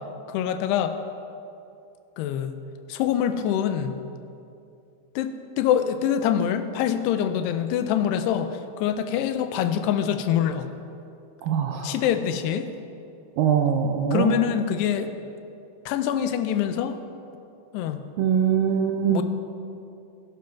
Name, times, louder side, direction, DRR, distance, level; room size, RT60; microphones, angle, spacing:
voice 1, 0.3-1.0 2.2-2.5 2.9-4.0 5.2-10.7 11.8-12.7 14.1-15.1 15.9-17.0 17.7-18.1 19.1-19.2, left 9 dB, 90° left, 9 dB, 2.7 m, -25 dB
voice 2, 11.4-11.9 13.4-14.4 18.2-19.2, right 8 dB, 80° right, 3 dB, 2.1 m, -22 dB
13.0 x 10.5 x 5.8 m, 2.6 s
omnidirectional pair, 4.7 m